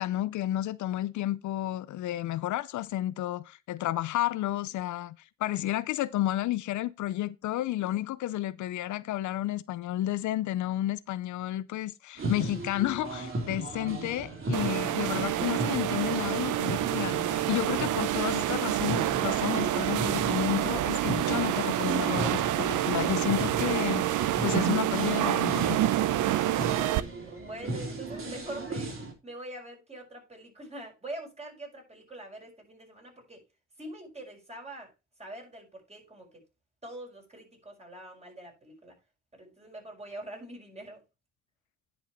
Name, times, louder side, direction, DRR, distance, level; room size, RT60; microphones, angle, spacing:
voice 1, 0.0-25.8, left 14 dB, 75° left, 0.6 m, -31 dB
sound 1, 12.2-29.1, right 2 dB, 45° right, 3.3 m, -37 dB
sound 2, 14.5-27.0, right 13 dB, 85° right, 0.7 m, -28 dB
voice 2, 26.5-29.0 29.2-33.4 33.8-34.9 35.2-36.3 36.8-39.0 39.3-41.0, right 1 dB, 20° right, 5.8 m, -44 dB
10.0 x 6.1 x 4.4 m
cardioid pair, 90°, 30 cm